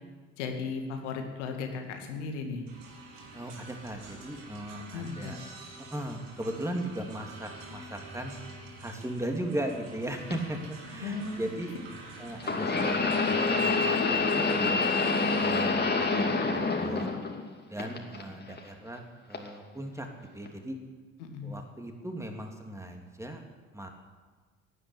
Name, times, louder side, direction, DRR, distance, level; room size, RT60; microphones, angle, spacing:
voice 1, 0.4-2.6 4.9-5.3 11.0-11.4 21.2-21.6, left 4 dB, 75° left, 4 dB, 2.2 m, -36 dB
sound 1, 2.7-15.7, right 2 dB, 65° right, 2.7 m, -47 dB
voice 2, 3.3-5.4 5.8-8.4 8.8-10.6 10.8-11.7 12.2-14.8 15.4-17.2 17.7-20.1 20.3-20.8 21.4-23.4 23.7-23.9, right 1 dB, 10° right, 3 dB, 2.9 m, -37 dB
sound 2, 10.3-10.4 12.4-17.5 17.8-18.6 19.3-19.5 20.5-20.6, left 3 dB, 25° left, 2.8 m, -27 dB
17.0 x 9.9 x 8.3 m, 1.4 s
figure-of-eight pair, 50°, 36 cm